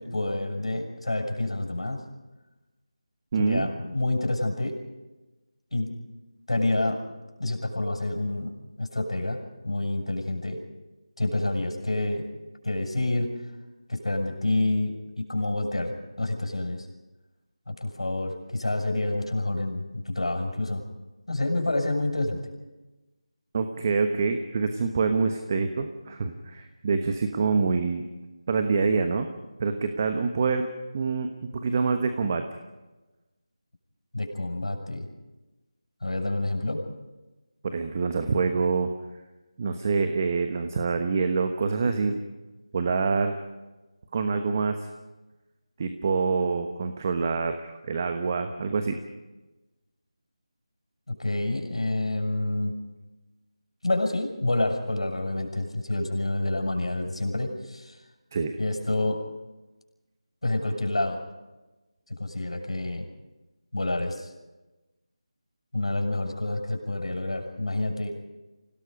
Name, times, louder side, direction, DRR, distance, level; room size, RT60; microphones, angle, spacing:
voice 1, 0.0-2.0 3.4-4.7 5.7-5.9 6.5-7.0 7.4-8.5 8.8-9.4 9.6-10.6 11.2-12.2 12.6-13.3 13.9-16.9 17.7-20.8 21.3-22.4 34.1-35.1 36.0-36.8 51.1-52.7 53.8-58.0 58.6-59.2 60.4-61.2 62.1-63.0 63.7-64.3 65.7-68.2, left 2 dB, 80° left, 3 dB, 6.5 m, -28 dB
voice 2, 3.3-3.7 23.5-28.0 28.5-29.3 29.6-30.7 30.9-32.4 37.6-38.9 39.6-42.2 42.7-43.4 44.1-44.8 45.8-49.0 58.3-58.5, right 4 dB, 30° right, 7 dB, 1.1 m, -26 dB
28.5 x 18.0 x 5.2 m, 1.1 s
figure-of-eight pair, 165°, 3 cm